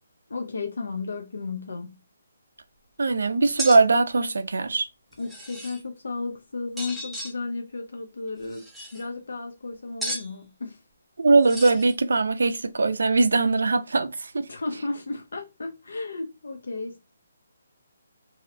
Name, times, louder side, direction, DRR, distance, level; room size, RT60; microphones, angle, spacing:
voice 1, 0.3-2.0 5.2-10.8 14.5-17.1, left 3 dB, 75° left, 0.4 m, -34 dB
voice 2, 3.0-4.9 11.2-14.5, right 3 dB, 75° right, 0.4 m, -21 dB
sound 1, 3.6-3.8 5.1-5.8 6.8-7.3 8.4-9.0 10.0-10.3 11.4-11.9, right 1 dB, ahead, 0.4 m, -34 dB
2.6 x 2.0 x 2.6 m
hypercardioid pair, 165°, 0 cm